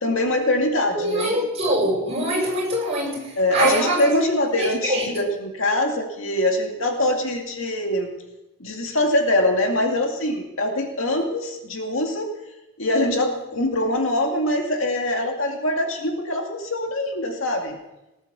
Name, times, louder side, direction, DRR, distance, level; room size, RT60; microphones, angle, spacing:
voice 1, 0.0-1.3 3.4-8.1 8.6-12.3 12.8-17.8, left 1 dB, 60° left, 2 dB, 2.3 m, -23 dB
voice 2, 0.9-4.1 4.6-5.3, right 1 dB, 30° right, -3 dB, 6.8 m, -23 dB
19.0 x 9.7 x 7.0 m, 0.95 s
head